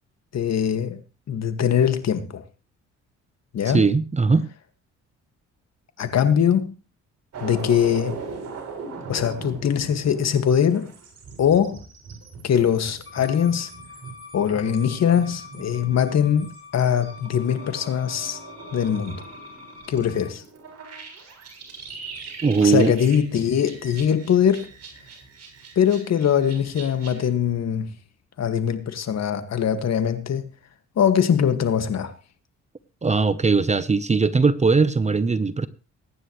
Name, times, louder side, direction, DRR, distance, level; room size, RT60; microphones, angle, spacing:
voice 1, 0.3-1.0 1.3-2.4 3.5-3.8 6.0-6.8 7.4-8.2 9.1-10.9 11.4-11.8 12.4-13.7 14.3-18.4 18.7-19.2 19.9-20.4 22.6-24.7 25.8-27.9 28.4-30.5 31.0-32.1, left 8 dB, 60° left, 2.0 m, -22 dB
voice 2, 3.6-4.5 22.4-22.9 33.0-35.7, right 4 dB, 25° right, 0.9 m, -19 dB
sound 1, 7.3-27.3, right 4 dB, 60° right, 6.7 m, -40 dB
Bowed string instrument, 13.1-20.3, left 5 dB, 45° left, 2.7 m, -45 dB
23.0 x 10.0 x 3.2 m
cardioid pair, 90°, 30 cm